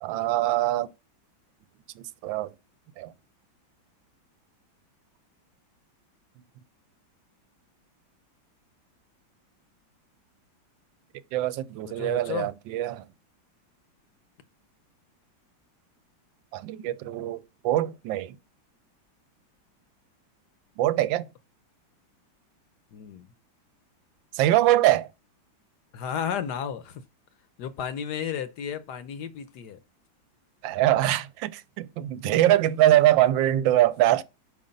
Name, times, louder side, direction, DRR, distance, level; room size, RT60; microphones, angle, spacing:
voice 1, 0.0-0.9 2.0-2.5 3.0-3.1 11.3-13.0 16.5-18.3 20.8-21.3 24.3-25.1 30.6-34.2, right 14 dB, 80° right, 1.3 m, -23 dB
voice 2, 11.8-12.5 22.9-23.3 25.9-27.0 27.6-29.8 32.2-32.4, left 8 dB, 65° left, 1.2 m, -33 dB
5.4 x 4.9 x 5.2 m
omnidirectional pair, 2.1 m